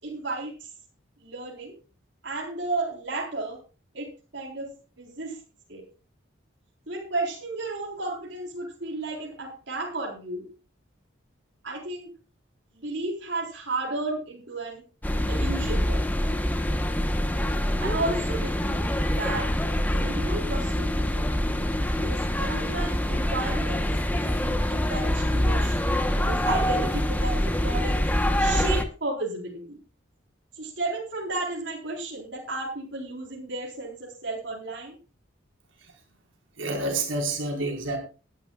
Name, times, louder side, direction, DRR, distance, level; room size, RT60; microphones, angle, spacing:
voice 1, 0.0-0.7 1.2-1.7 2.2-3.6 3.9-5.4 5.7-5.8 6.9-10.5 11.6-12.1 12.7-14.8 15.3-16.0 17.8-18.9 19.1-19.5 19.9-21.3 22.0-28.0 28.4-29.8 30.6-35.0, right 2 dB, 70° right, 4.0 m, -33 dB
sound 1, 15.0-28.8, left 1 dB, 10° left, 1.0 m, -25 dB
voice 2, 36.6-38.0, right 2 dB, 85° right, 4.7 m, -28 dB
20.0 x 11.5 x 2.4 m
head